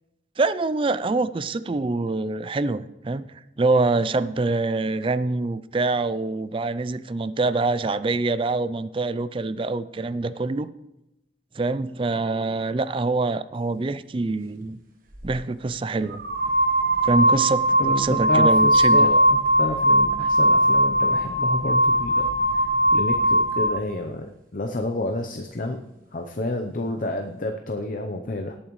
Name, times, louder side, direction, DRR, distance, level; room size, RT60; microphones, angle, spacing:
voice 1, 0.4-3.3 3.6-10.7 11.6-14.8 15.2-16.2 17.0-19.1, right 3 dB, 30° right, 14 dB, 0.4 m, -25 dB
sound 1, 15.1-15.3 16.1-23.8, right 1 dB, 50° right, 1.5 m, -20 dB
voice 2, 17.8-22.2 22.5-25.8 26.1-28.6, left 1 dB, 50° left, 4 dB, 0.7 m, -30 dB
18.0 x 8.7 x 3.1 m, 0.90 s
head